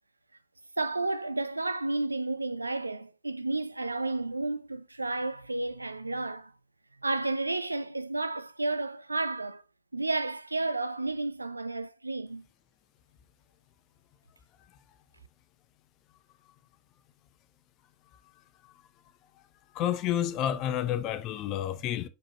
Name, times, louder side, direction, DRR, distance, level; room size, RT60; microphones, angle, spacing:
voice 1, 0.8-6.5 7.0-9.6 9.9-12.4, right 2 dB, 80° right, 0.4 m, -31 dB
voice 2, 19.7-22.1, left 11 dB, 40° left, 0.7 m, -30 dB
6.6 x 5.0 x 2.9 m
figure-of-eight pair, 90°, 0 cm